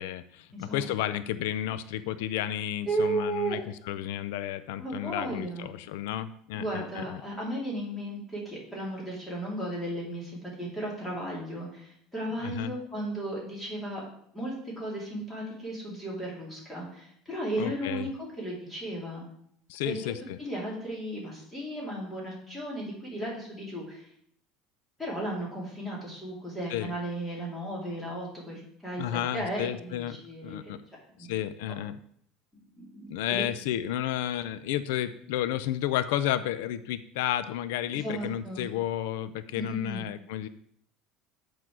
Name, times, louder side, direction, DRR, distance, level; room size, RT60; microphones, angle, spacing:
voice 1, 0.0-3.6 3.9-7.2 12.4-12.7 17.6-18.1 19.7-20.4 26.7-26.9 29.0-30.8 31.2-32.0 33.1-40.5, left 12 dB, 90° left, 13 dB, 0.4 m, -32 dB
voice 2, 0.5-0.9 2.8-3.6 4.8-5.7 6.5-14.0 14.3-19.2 19.8-20.0 20.4-24.1 25.0-30.7 31.2-31.4 32.7-33.5 37.9-38.6 39.6-40.0, right 1 dB, 5° left, -5 dB, 2.7 m, -35 dB
8.0 x 4.5 x 6.1 m, 0.65 s
cardioid pair, 170°, 0 cm